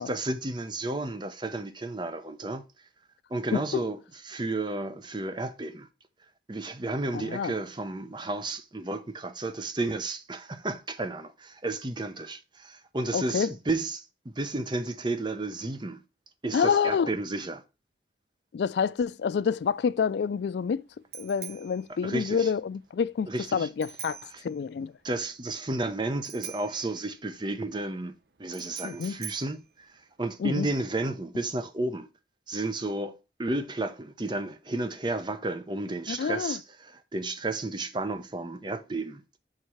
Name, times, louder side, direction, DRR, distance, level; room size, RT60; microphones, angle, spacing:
voice 1, 0.0-2.6 3.3-4.0 4.2-5.9 6.5-16.0 16.4-17.6 22.0-22.5 23.3-23.7 24.3-24.4 25.0-32.1 32.5-39.2, right 2 dB, 25° right, 0.7 m, -32 dB
voice 2, 3.5-3.8 7.1-7.5 13.1-13.5 16.5-17.1 18.5-20.8 21.1-24.9 28.8-29.2 30.4-30.7 36.1-36.6, left 6 dB, 70° left, 0.3 m, -28 dB
Bicycle bell, 19.5-30.6, right 8 dB, 60° right, 0.8 m, -47 dB
6.4 x 4.8 x 5.5 m
head